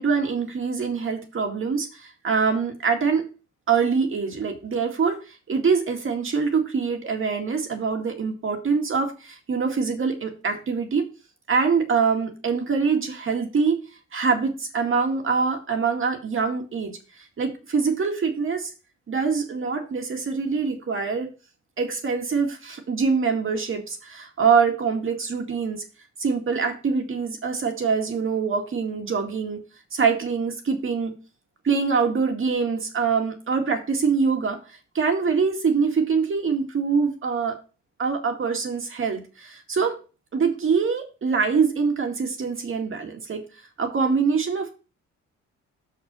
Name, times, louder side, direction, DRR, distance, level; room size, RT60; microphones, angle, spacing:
voice 1, 0.0-3.3 3.7-11.1 11.5-13.8 14.1-16.9 17.4-18.7 19.1-21.3 21.8-25.8 26.2-29.6 29.9-31.1 31.6-34.6 34.9-37.6 38.0-40.0 40.3-43.4 43.8-44.7, right 5 dB, 45° right, 4 dB, 2.1 m, -24 dB
6.0 x 5.7 x 5.4 m, 0.33 s
cardioid pair, 90°, 30 cm